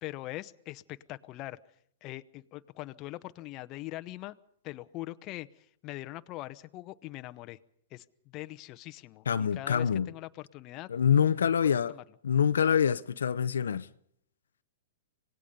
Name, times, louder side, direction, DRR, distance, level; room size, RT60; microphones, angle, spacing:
voice 1, 0.0-1.6 2.0-4.3 4.6-7.6 7.9-11.3 11.6-12.0, left 17 dB, 35° left, 0.9 m, -42 dB
voice 2, 9.3-10.1 10.9-11.9 12.2-13.9, left 8 dB, 85° left, 0.7 m, -25 dB
26.0 x 18.5 x 5.4 m
hypercardioid pair, 130°, 0 cm